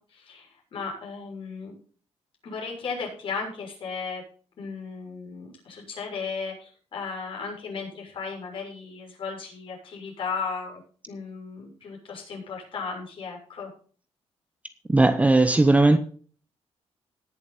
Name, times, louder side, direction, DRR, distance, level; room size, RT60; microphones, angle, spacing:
voice 1, 0.1-1.7 2.4-4.2 4.6-10.8 11.1-13.7, left 5 dB, 50° left, 6.6 m, -35 dB
voice 2, 14.9-16.0, right 2 dB, 10° right, 0.7 m, -18 dB
19.0 x 7.2 x 4.1 m
cardioid pair, 160°, 11 cm